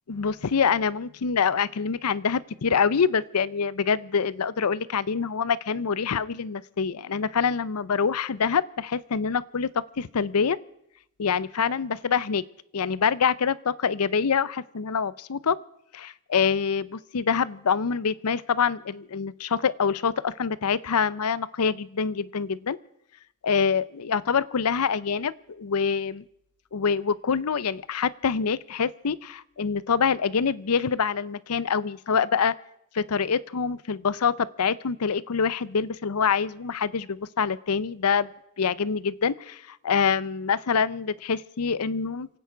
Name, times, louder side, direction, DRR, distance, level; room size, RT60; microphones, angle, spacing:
voice 1, 0.1-9.7 10.0-10.6 11.2-12.4 12.7-15.6 15.9-22.8 23.4-26.2 26.7-32.5 32.9-38.3 38.6-42.3, left 6 dB, 80° left, 19 dB, 0.6 m, -25 dB
28.0 x 9.4 x 5.1 m, 0.77 s
head